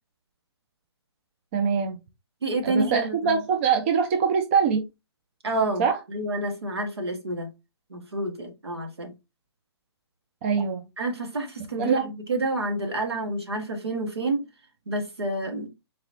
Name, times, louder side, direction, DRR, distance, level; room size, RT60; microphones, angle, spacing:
voice 1, 1.5-2.0 2.6-4.8 5.8-6.0 10.4-10.9 11.8-12.1, right 6 dB, 25° right, 0.5 m, -23 dB
voice 2, 2.4-3.4 5.4-7.5 7.9-9.1 11.0-14.4 14.9-15.7, right 2 dB, 70° right, 1.2 m, -29 dB
3.9 x 2.9 x 2.6 m
figure-of-eight pair, 130°, 14 cm